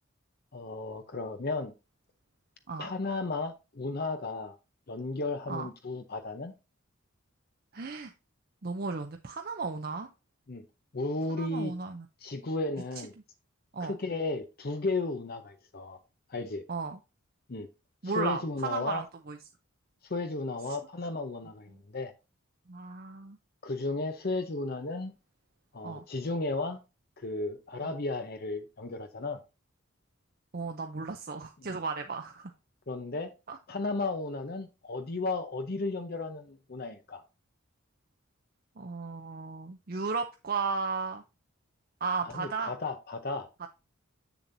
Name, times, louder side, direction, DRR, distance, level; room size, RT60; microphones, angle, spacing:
voice 1, 0.5-1.7 2.8-4.5 4.9-6.5 10.5-10.6 10.9-11.7 12.2-13.1 13.8-16.0 16.3-16.6 17.5-17.7 18.0-19.0 20.0-22.1 23.6-25.1 25.7-26.8 27.2-29.4 31.6-31.8 32.9-33.3 33.7-37.2 42.2-43.5, left 3 dB, 45° left, 0.7 m, -34 dB
voice 2, 7.7-8.1 8.6-10.1 11.4-12.1 13.7-14.0 16.7-17.0 18.0-19.4 22.7-23.4 25.8-26.0 27.8-27.9 30.5-32.5 33.5-33.6 38.8-41.2 42.0-42.7, right 4 dB, 45° right, 0.6 m, -34 dB
7.5 x 7.0 x 2.6 m
head